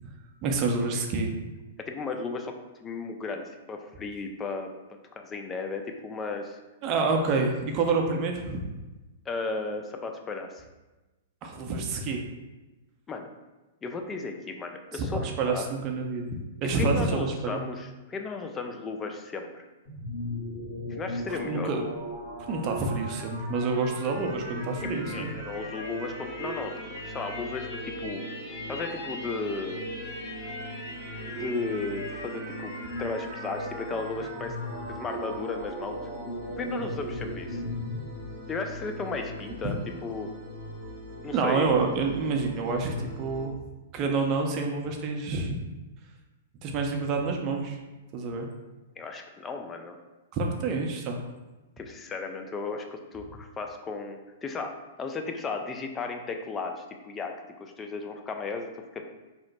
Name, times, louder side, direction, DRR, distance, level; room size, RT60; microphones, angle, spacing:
voice 1, 0.4-1.3 6.8-8.6 11.4-12.2 14.9-17.6 21.3-21.8 22.5-25.3 39.6-39.8 41.3-43.5 43.9-45.6 46.6-47.8 48.1-48.5 50.3-51.2, right 4 dB, 40° right, 2 dB, 0.5 m, -28 dB
voice 2, 1.9-2.5 2.8-4.7 5.2-6.6 9.3-10.6 13.1-13.3 13.8-15.7 16.7-19.6 20.9-21.7 24.8-26.7 27.1-28.2 28.7-29.9 31.3-32.7 33.0-34.6 34.9-36.0 36.6-37.6 38.5-39.8 40.0-40.3 41.2-41.7 49.0-50.0 51.8-57.3 57.6-59.0, left 4 dB, 20° left, 4 dB, 0.4 m, -35 dB
sound 1, 19.8-38.0, left 1 dB, 65° left, 1.5 m, -38 dB
sound 2, 24.1-43.5, equal, 40° left, 1.0 m, -42 dB
3.0 x 2.0 x 4.0 m, 1.1 s
hypercardioid pair, 115°, 0 cm